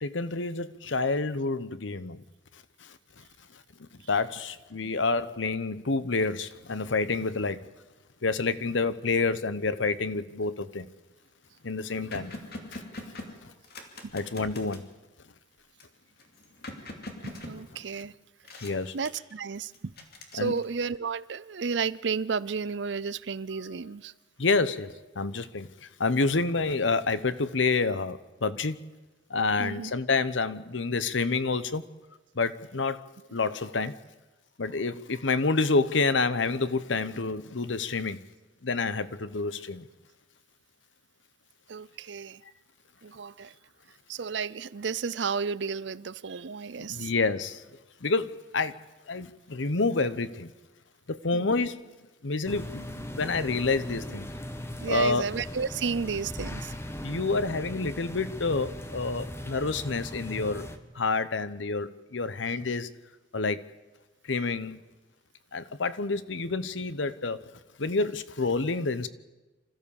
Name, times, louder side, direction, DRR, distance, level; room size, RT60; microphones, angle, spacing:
voice 1, 0.0-2.2 2.8-3.0 3.8-7.7 8.2-10.9 11.6-12.4 14.1-14.8 18.6-18.9 20.3-20.5 24.4-28.8 29.3-31.8 32.3-34.0 34.6-38.2 38.6-39.9 46.8-47.6 48.0-48.7 49.1-50.5 51.1-51.9 52.2-52.9 53.1-54.3 54.9-55.3 57.0-60.7 60.9-62.9 63.3-63.6 64.3-64.8 65.5-67.4 67.8-69.1, left 3 dB, 85° left, 1.0 m, -28 dB
sound 1, 10.4-10.8 11.2-11.3 11.5-14.9 15.8-18.1 18.4-19.4 19.7-20.9, left 2 dB, 60° left, 2.7 m, -43 dB
voice 2, 17.2-18.1 18.9-19.7 20.3-24.1 29.6-29.9 41.7-42.4 43.0-43.5 44.1-47.1 51.3-51.5 54.8-56.7, right 5 dB, 70° right, 0.6 m, -32 dB
sound 2, 52.5-60.8, left 1 dB, 15° left, 1.2 m, -39 dB
26.5 x 14.0 x 7.1 m
head